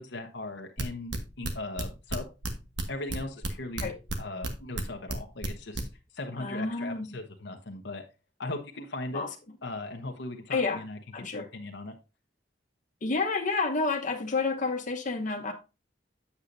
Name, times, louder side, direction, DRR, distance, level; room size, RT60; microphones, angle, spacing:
voice 1, 0.0-2.3 2.9-3.9 4.2-5.9 6.1-8.0 8.4-9.3 9.6-11.0 11.3-11.9, left 2 dB, 70° left, 1.0 m, -38 dB
sound 1, 0.8-2.5 2.8-4.5 4.7-5.8, right 3 dB, 75° right, 1.2 m, -32 dB
voice 2, 6.4-7.1 9.1-9.3 10.5-10.8 11.1-11.5 13.0-15.5, left 3 dB, 45° left, 1.1 m, -29 dB
8.2 x 7.2 x 2.6 m
head